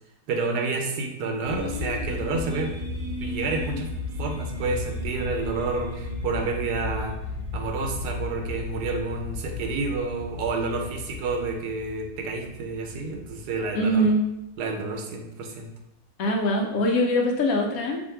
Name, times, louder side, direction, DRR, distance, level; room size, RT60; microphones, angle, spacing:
voice 1, 0.3-3.9 4.2-7.2 7.5-14.1 14.6-15.7, right 3 dB, 85° right, 3 dB, 1.2 m, -29 dB
sound 1, 1.4-14.3, left 2 dB, 25° right, 0.6 m, -34 dB
voice 2, 13.7-14.2 16.2-18.0, equal, 70° left, 1 dB, 1.0 m, -22 dB
2.7 x 2.6 x 4.3 m, 0.87 s
omnidirectional pair, 1.7 m